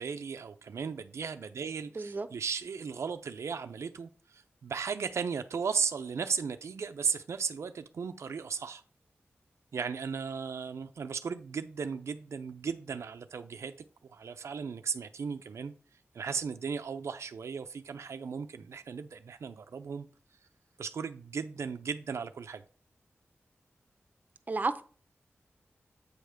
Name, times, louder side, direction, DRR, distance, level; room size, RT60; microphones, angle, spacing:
voice 1, 0.0-8.8 9.7-13.7 14.0-15.7 16.1-20.1 20.8-22.6, right 6 dB, 90° right, 0.5 m, -36 dB
voice 2, 2.0-2.3 24.5-24.8, right 3 dB, 40° right, 0.7 m, -31 dB
8.2 x 3.4 x 6.4 m
wide cardioid pair, 105°, 5 cm